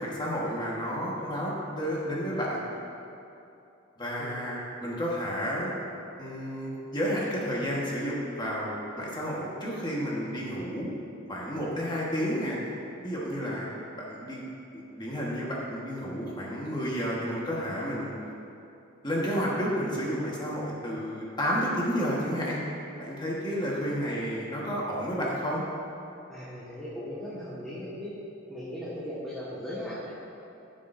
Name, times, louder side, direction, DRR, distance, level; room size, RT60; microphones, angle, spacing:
voice 1, 0.0-2.6 4.0-5.7 6.2-10.9 11.3-12.6 13.0-13.7 13.9-14.4 14.7-18.1 19.0-22.6 23.0-25.6, equal, 20° left, -5 dB, 1.4 m, -31 dB
voice 2, 26.3-28.1 28.5-30.1, equal, 5° left, -11 dB, 1.6 m, -38 dB
14.5 x 7.6 x 2.7 m, 2.8 s
head